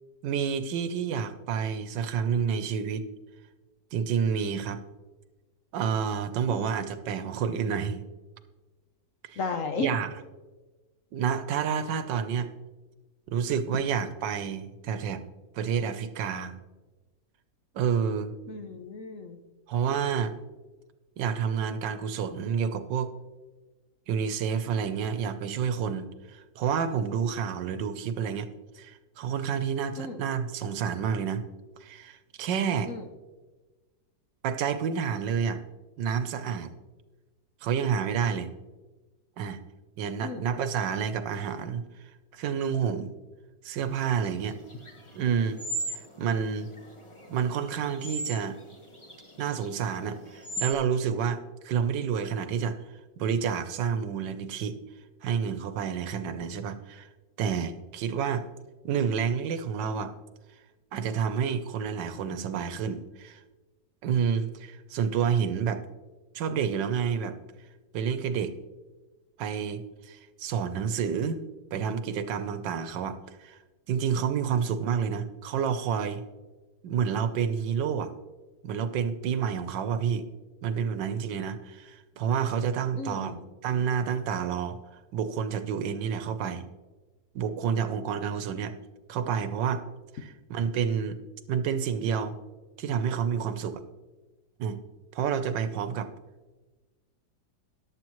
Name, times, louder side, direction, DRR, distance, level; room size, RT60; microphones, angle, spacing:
voice 1, 0.2-3.0 3.9-4.8 5.7-8.1 9.2-9.4 9.8-10.1 11.1-12.5 13.3-15.2 15.5-16.5 17.7-18.3 19.7-20.3 21.2-23.1 24.1-28.5 28.8-31.4 31.8-32.9 34.4-35.6 36.0-36.7 37.6-38.5 39.4-39.6 40.0-41.8 42.3-43.1 43.6-44.6 45.2-45.6 45.9-46.7 47.3-48.6 49.4-52.8 53.2-54.7 55.2-57.1 57.4-58.5 58.8-60.1 60.9-63.4 64.0-65.8 66.3-67.4 67.9-68.5 69.4-71.4 71.7-73.6 73.9-76.2 76.8-78.1 78.6-80.2 80.6-83.3 83.6-84.8 85.1-86.7 87.3-88.8 89.1-89.8 90.2-91.2 91.5-92.4 92.8-93.8 94.6-94.8 95.1-96.1, right 7 dB, 85° right, 10 dB, 1.5 m, -29 dB
voice 2, 9.4-10.0 18.5-19.4 30.0-30.2 32.9-33.1 40.2-40.5 83.0-83.5, left 4 dB, 55° left, 6 dB, 1.0 m, -34 dB
sound 1, 43.9-50.7, right 2 dB, 20° left, 1.2 m, -39 dB
13.5 x 10.5 x 3.0 m, 1.2 s
omnidirectional pair, 1.9 m